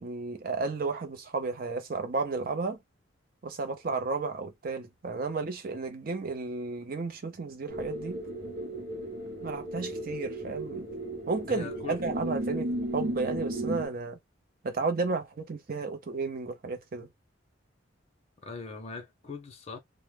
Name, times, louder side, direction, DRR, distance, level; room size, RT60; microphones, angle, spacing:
voice 1, 0.0-2.8 3.4-8.2 9.4-10.9 11.3-14.2 14.6-17.1, right 4 dB, 45° right, 0.5 m, -33 dB
sound 1, 7.7-13.9, right 1 dB, 90° right, 0.8 m, -35 dB
voice 2, 11.5-12.0 18.4-19.8, left 4 dB, 30° left, 0.6 m, -40 dB
2.1 x 2.1 x 3.2 m
head